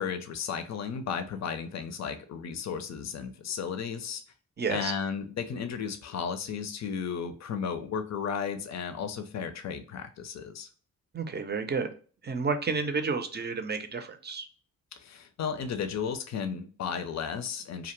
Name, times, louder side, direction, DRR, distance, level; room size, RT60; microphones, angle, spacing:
voice 1, 0.0-4.2 4.7-10.7 14.9-17.9, left 6 dB, 50° left, 8 dB, 0.5 m, -34 dB
voice 2, 4.6-4.9 11.1-11.9 12.2-14.5, right 4 dB, 30° right, 8 dB, 0.5 m, -31 dB
2.3 x 2.1 x 3.0 m, 0.39 s
supercardioid pair, 45°, 34 cm